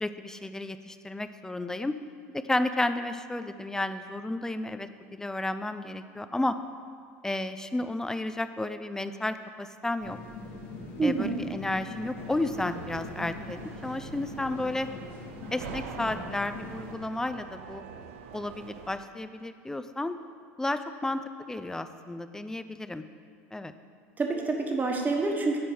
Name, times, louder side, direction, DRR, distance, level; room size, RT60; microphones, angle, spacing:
voice 1, 0.0-2.0 2.3-6.6 7.2-10.2 11.0-14.9 15.5-17.8 18.3-20.2 20.6-23.0 23.5-23.7, left 2 dB, 10° left, 10 dB, 0.4 m, -32 dB
sound 1, 10.0-16.9, left 3 dB, 65° left, 1.9 m, -42 dB
voice 2, 11.0-11.4 24.2-25.6, right 3 dB, 25° right, 2 dB, 1.3 m, -27 dB
sound 2, 12.2-18.9, right 6 dB, 80° right, 0.7 m, -45 dB
10.5 x 4.4 x 6.1 m, 2.1 s
hypercardioid pair, 95°, 7 cm